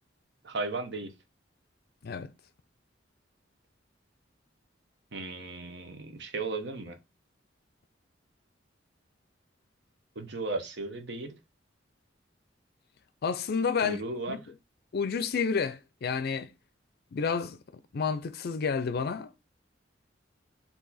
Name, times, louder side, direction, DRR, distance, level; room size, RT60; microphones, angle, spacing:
voice 1, 0.4-1.1 5.1-7.0 10.2-11.4 13.8-14.4, right 3 dB, 65° right, 0.9 m, -35 dB
voice 2, 13.2-14.0 14.3-14.4 14.9-16.5 17.1-17.6 17.9-19.4, left 5 dB, 55° left, 0.4 m, -30 dB
4.6 x 2.8 x 4.1 m
head